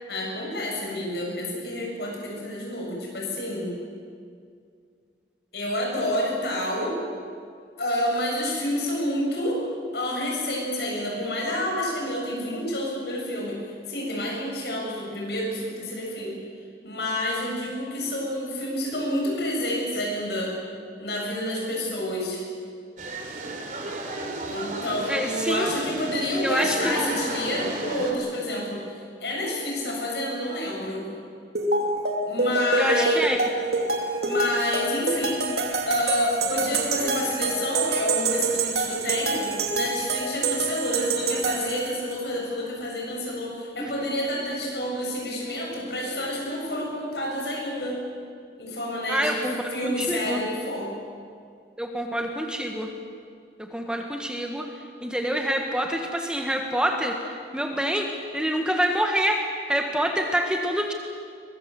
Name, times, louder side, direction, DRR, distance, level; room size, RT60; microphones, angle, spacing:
voice 1, 0.1-3.7 5.5-7.0 7.8-9.6 9.9-13.6 13.9-16.4 16.8-20.6 21.0-22.4 24.5-31.1 32.3-33.2 34.2-35.4 35.9-48.0 48.6-50.9, left 1 dB, 70° left, -1 dB, 7.5 m, -29 dB
sound 1, 23.0-28.1, right 2 dB, 45° right, 3.3 m, -33 dB
voice 2, 25.1-25.7 26.2-27.1 32.8-33.5 43.8-43.9 49.1-50.4 51.8-52.9 53.6-60.9, equal, 5° right, 3 dB, 1.6 m, -27 dB
sound 2, 31.5-42.2, right 3 dB, 65° right, 2.7 m, -26 dB
23.0 x 22.0 x 7.8 m, 2.2 s
head